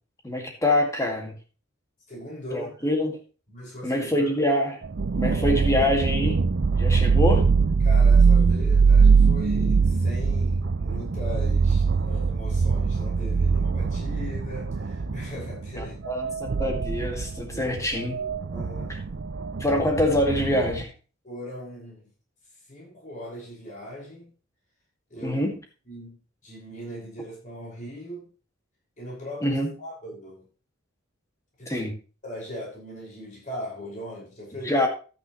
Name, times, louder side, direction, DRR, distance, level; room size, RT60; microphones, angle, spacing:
voice 1, 0.2-1.3 2.5-3.2 3.8-4.8 5.2-6.4 6.8-7.5 15.8-18.2 19.6-20.9 25.2-25.5 29.4-29.7 31.7-31.9 34.7-34.9, left 1 dB, 15° left, 2 dB, 2.1 m, -25 dB
voice 2, 2.1-2.8 3.5-4.3 7.8-16.0 17.4-18.9 21.2-22.1 22.7-24.3 25.1-25.4 25.9-26.2 26.4-28.3 29.0-30.5 31.6-31.9 32.2-34.8, equal, 40° left, -4 dB, 5.8 m, -39 dB
sound 1, 4.8-20.8, right 5 dB, 55° right, 0.5 m, -22 dB
12.0 x 9.4 x 3.2 m, 0.36 s
head